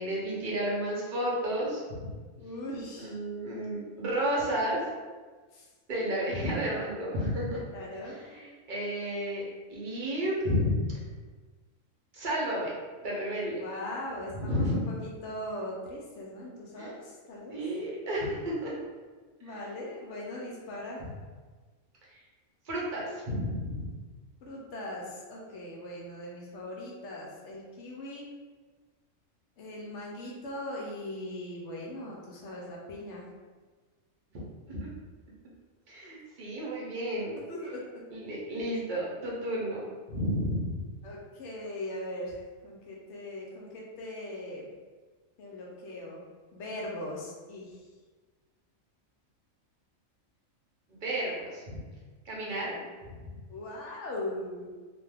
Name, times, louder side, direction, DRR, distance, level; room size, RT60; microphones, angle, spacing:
voice 1, 0.0-2.1 3.0-4.8 5.9-7.6 8.3-10.7 12.1-12.7 13.0-13.6 14.4-14.7 16.8-16.9 17.5-18.7 19.4-19.5 22.1-22.2 22.6-23.9 34.3-34.9 35.9-37.4 38.1-40.8 50.9-51.8 52.2-52.8, equal, 45° right, -5 dB, 0.7 m, -32 dB
voice 2, 2.4-3.2 5.5-5.7 7.7-8.2 13.6-17.6 19.4-21.0 24.4-28.3 29.6-33.2 37.5-37.8 41.0-44.7 45.4-46.2 46.5-47.9 52.3-52.9 53.5-54.7, left 1 dB, 70° left, -3 dB, 0.8 m, -40 dB
2.5 x 2.2 x 3.3 m, 1.4 s
omnidirectional pair, 1.4 m